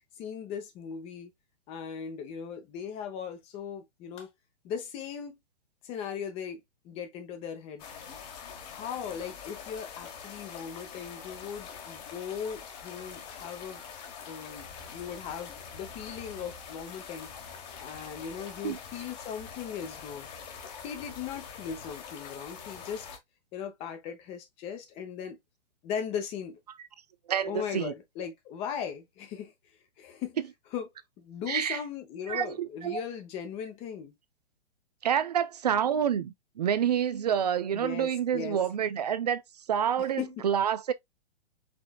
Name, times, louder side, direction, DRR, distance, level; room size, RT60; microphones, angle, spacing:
voice 1, 0.2-1.3 1.7-4.3 4.6-5.4 5.8-7.8 8.7-13.8 14.3-17.3 17.8-20.3 20.8-23.1 23.5-25.4 25.8-26.6 27.5-29.5 30.0-30.4 30.7-30.9 31.2-34.1 37.7-38.6 40.2-40.5, left 7 dB, 15° left, 0.7 m, -38 dB
sound 1, 7.8-23.2, left 6 dB, 35° left, 1.2 m, -44 dB
voice 2, 27.3-27.9 31.5-31.8 32.3-33.0 35.0-39.4 39.7-40.9, right 8 dB, 40° right, 0.4 m, -28 dB
5.1 x 3.2 x 2.2 m
figure-of-eight pair, 120°, 35 cm